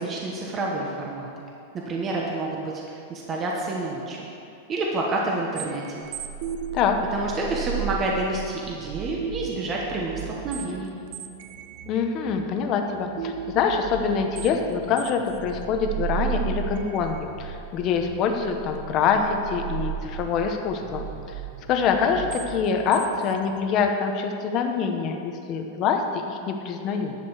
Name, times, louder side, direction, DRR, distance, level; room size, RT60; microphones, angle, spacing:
voice 1, 0.0-1.5 1.9-4.3 4.7-6.1 7.1-10.9, right 2 dB, 20° right, -2 dB, 1.0 m, -29 dB
sound 1, 5.6-23.9, right 8 dB, 45° right, 0.5 m, -35 dB
voice 2, 11.9-21.1 21.7-27.2, left 6 dB, 30° left, 4 dB, 0.9 m, -25 dB
11.0 x 5.1 x 8.0 m, 2.7 s
supercardioid pair, 165°, 0 cm